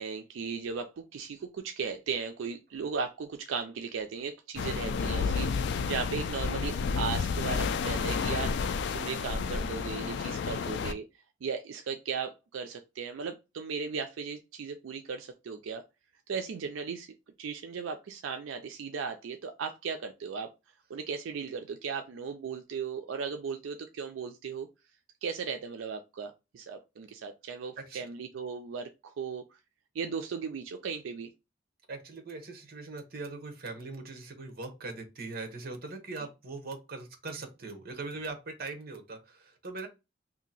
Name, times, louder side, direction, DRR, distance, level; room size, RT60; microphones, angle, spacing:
voice 1, 0.0-5.5 5.9-8.5 8.9-11.1 11.4-15.8 16.3-17.1 17.4-20.5 20.9-24.7 25.2-29.4 29.9-31.3, right 5 dB, 80° right, 6 dB, 0.4 m, -36 dB
sound 1, 4.6-10.9, left 5 dB, 60° left, 0.3 m, -31 dB
voice 2, 31.9-39.9, right 3 dB, 50° right, 5 dB, 0.9 m, -41 dB
2.8 x 2.5 x 4.0 m, 0.26 s
head